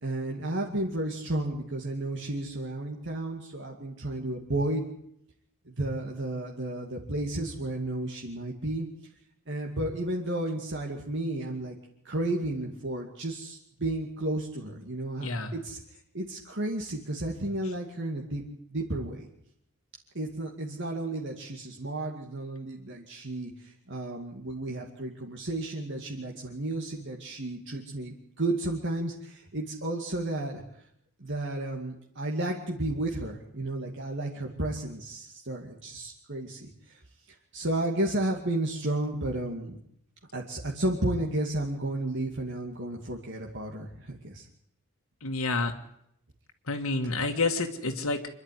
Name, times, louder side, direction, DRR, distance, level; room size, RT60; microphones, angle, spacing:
voice 1, 0.0-4.8 5.7-8.9 9.5-11.8 12.0-15.8 16.1-18.4 18.7-19.3 20.1-30.6 31.2-37.0 37.5-39.8 40.3-44.5, right 1 dB, 55° right, 0 dB, 2.4 m, -32 dB
voice 2, 15.2-15.5 45.2-45.7 46.7-48.2, left 3 dB, 70° left, 4 dB, 1.9 m, -29 dB
25.5 x 11.5 x 9.5 m, 0.73 s
head